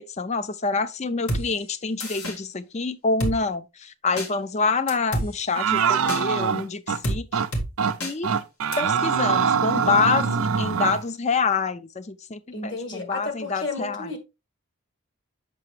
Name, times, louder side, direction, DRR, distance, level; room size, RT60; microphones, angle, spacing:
voice 1, 0.0-7.4 8.0-8.3 8.8-14.1, left 4 dB, 30° left, 0.4 m, -26 dB
Drum kit, 1.3-1.4 2.0-2.4 3.2-3.4 4.2-4.3 4.9-5.3 6.1-6.2 7.0-7.2 7.5-7.7 8.0-8.1 8.7-8.8, equal, 85° left, 1.9 m, -27 dB
sound 1, 5.6-7.0 7.3-7.5 7.8-8.0 8.2-11.0, right 6 dB, 75° right, 0.6 m, -23 dB
voice 2, 12.5-14.2, left 3 dB, 55° left, 1.7 m, -32 dB
7.5 x 5.8 x 3.1 m
head